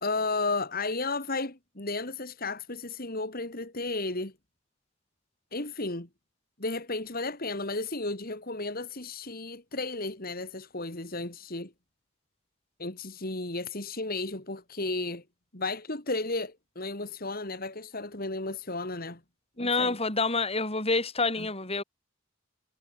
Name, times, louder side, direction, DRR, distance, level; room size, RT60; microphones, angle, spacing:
voice 1, 0.0-4.3 5.5-6.1 6.6-11.7 12.8-15.2 15.5-19.2 19.6-20.0 21.4-21.5, left 3 dB, 45° left, 3.0 m, -33 dB
voice 2, 19.6-21.8, left 3 dB, 30° left, 5.9 m, -27 dB
head